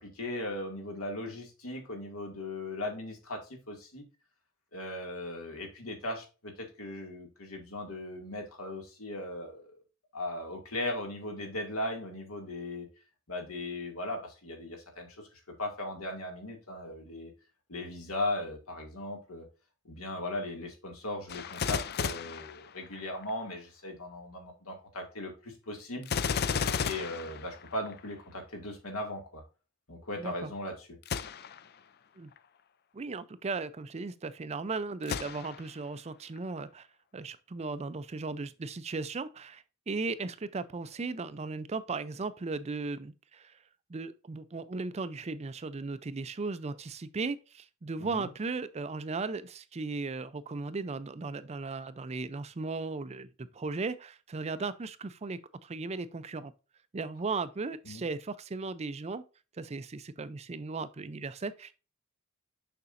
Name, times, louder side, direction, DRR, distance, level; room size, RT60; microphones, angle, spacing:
voice 1, 0.0-4.0 4.7-9.8 10.1-12.9 13.3-17.3 17.7-19.5 19.8-26.1 26.8-29.4 29.9-30.9 48.0-48.3 57.9-58.0, left 1 dB, 75° left, 2.2 m, -38 dB
Gunshot gunfire, 21.3-23.3 26.0-28.1 31.0-31.7 32.3-32.4 35.0-35.8 36.4-36.5, left 6 dB, 45° left, 0.4 m, -34 dB
voice 2, 30.2-30.5 32.2-32.3 32.9-36.9 37.1-43.6 43.9-56.5 56.9-59.2 59.6-61.8, right 3 dB, 30° right, 0.4 m, -36 dB
6.8 x 6.0 x 2.5 m
head